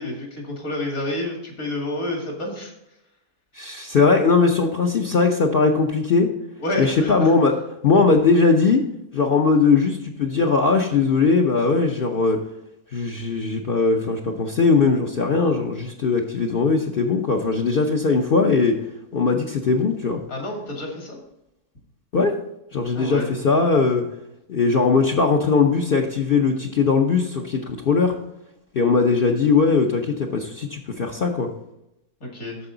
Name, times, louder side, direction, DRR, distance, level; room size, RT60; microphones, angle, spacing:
voice 1, 0.0-2.7 6.6-7.3 20.3-21.2 22.9-23.3 32.2-32.6, left 1 dB, 65° left, 0 dB, 2.7 m, -29 dB
voice 2, 3.5-6.3 6.8-8.8 9.1-12.4 12.9-18.8 19.1-20.2 22.1-22.4 22.7-24.0 24.5-28.1 28.7-31.5, left 4 dB, 45° left, 0 dB, 0.8 m, -19 dB
13.0 x 4.8 x 3.9 m, 0.84 s
omnidirectional pair, 1.6 m